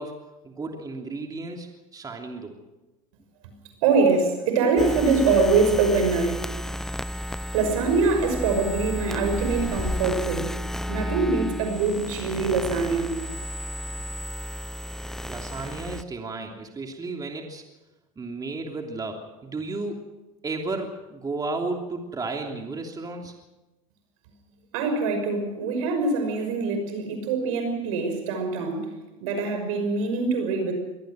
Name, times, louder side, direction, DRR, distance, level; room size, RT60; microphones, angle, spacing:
voice 1, 0.0-2.6 15.3-17.6 18.2-20.1 20.4-23.3, right 3 dB, 20° right, 2 dB, 3.1 m, -33 dB
voice 2, 3.8-6.5 7.5-10.5 10.9-13.2 24.7-28.9 29.2-30.7, right 4 dB, 80° right, 6 dB, 5.9 m, -24 dB
sound 1, 4.8-16.0, equal, 5° left, 0.6 m, -32 dB
23.5 x 18.0 x 6.4 m, 1.0 s
supercardioid pair, 100°, 17 cm